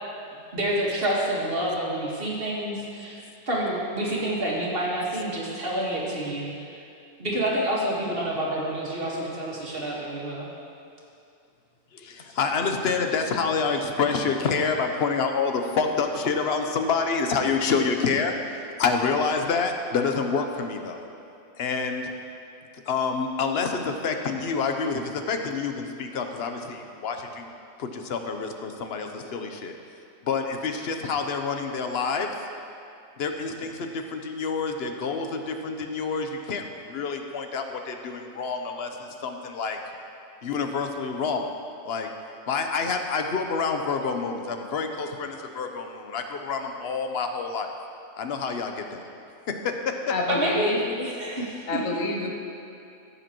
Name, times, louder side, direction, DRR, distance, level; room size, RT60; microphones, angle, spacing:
voice 1, 0.5-3.2 3.5-6.8 7.2-10.5 50.3-52.0, right 1 dB, 45° right, -4 dB, 1.7 m, -28 dB
voice 2, 11.9-21.1 21.6-22.1 22.9-27.5 27.8-29.7 30.2-32.3 33.2-39.8 40.4-41.5 41.8-42.1 42.5-47.7 48.2-49.0 49.5-49.9, left 5 dB, 55° left, 5 dB, 0.9 m, -28 dB
voice 3, 50.1-50.8 51.7-52.3, left 3 dB, 75° left, 0 dB, 1.5 m, -28 dB
15.5 x 8.1 x 3.0 m, 2.6 s
omnidirectional pair, 1.4 m